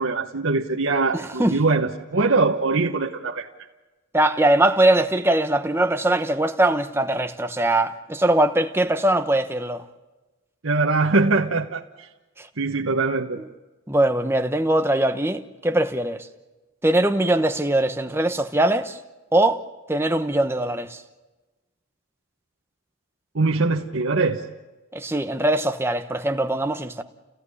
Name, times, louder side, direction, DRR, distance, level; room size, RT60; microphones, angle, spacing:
voice 1, 0.0-3.5 10.6-12.1 12.6-13.4 23.3-24.4, right 3 dB, 70° right, 1.2 m, -22 dB
voice 2, 1.1-1.6 4.1-9.9 12.4-12.5 13.9-16.3 16.8-19.0 19.3-19.6 19.9-21.0 24.9-27.0, right 1 dB, 10° right, 1.0 m, -21 dB
30.0 x 16.5 x 9.8 m
head